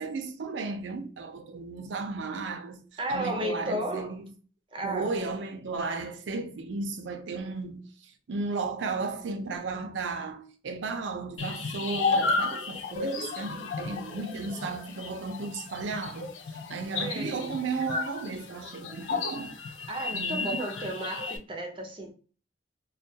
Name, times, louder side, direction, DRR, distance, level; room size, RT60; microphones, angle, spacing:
voice 1, 0.0-2.8 3.1-4.2 4.8-19.6 20.1-20.6, right 4 dB, 80° right, 0.5 m, -34 dB
voice 2, 3.0-4.1 4.7-5.1 17.0-17.5 19.9-22.1, right 1 dB, 25° right, 0.5 m, -33 dB
sound 1, 11.4-21.4, left 4 dB, 90° left, 0.4 m, -33 dB
2.2 x 2.2 x 2.7 m
head